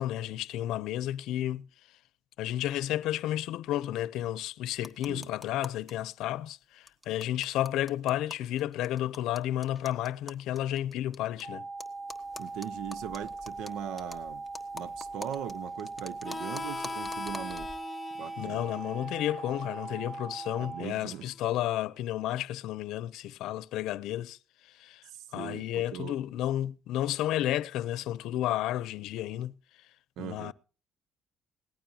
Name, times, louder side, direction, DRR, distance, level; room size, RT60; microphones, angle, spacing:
voice 1, 0.0-1.7 2.4-11.7 18.4-24.4 24.6-25.0 25.3-29.5 30.2-30.5, left 13 dB, 85° left, 0.6 m, -32 dB
sound 1, 4.8-5.9 6.2-6.3 6.5-6.6 6.9-11.4 11.8-17.8, left 1 dB, ahead, 1.4 m, -47 dB
sound 2, 11.4-20.8, right 3 dB, 55° right, 5.6 m, -40 dB
voice 2, 12.4-14.4 14.7-17.7 18.2-18.7 20.6-21.3 25.1-26.1 30.2-30.5, right 10 dB, 85° right, 0.7 m, -40 dB
Harmonica, 16.2-21.5, left 4 dB, 20° left, 0.6 m, -42 dB
19.0 x 15.5 x 2.9 m
cardioid pair, 135°, 0 cm